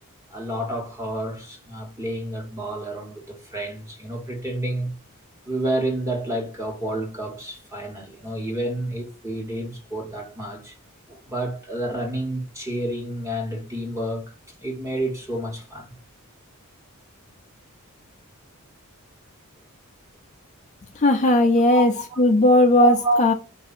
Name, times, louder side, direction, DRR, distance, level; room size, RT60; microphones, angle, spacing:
voice 1, 0.3-4.9 5.4-10.7 11.1-14.2 14.6-15.9 21.7-22.2 22.8-23.3, right 1 dB, 15° right, 1.3 m, -29 dB
voice 2, 21.0-21.9 22.2-23.3, left 2 dB, 35° left, 0.5 m, -17 dB
4.8 x 2.6 x 4.2 m
head